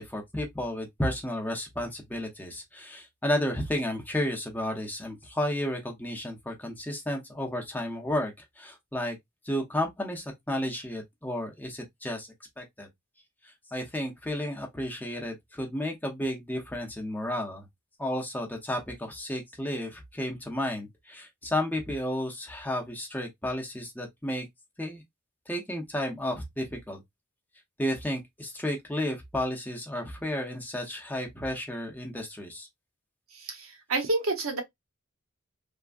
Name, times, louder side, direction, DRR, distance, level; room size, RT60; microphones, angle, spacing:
voice 1, 0.0-9.2 9.4-12.3 12.6-12.9 13.4-17.7 18.0-24.5 24.8-25.0 25.5-27.0 27.8-32.7, left 1 dB, 10° left, 0.7 m, -32 dB
voice 2, 33.3-34.6, right 2 dB, 90° right, 0.9 m, -29 dB
3.5 x 2.1 x 2.4 m
head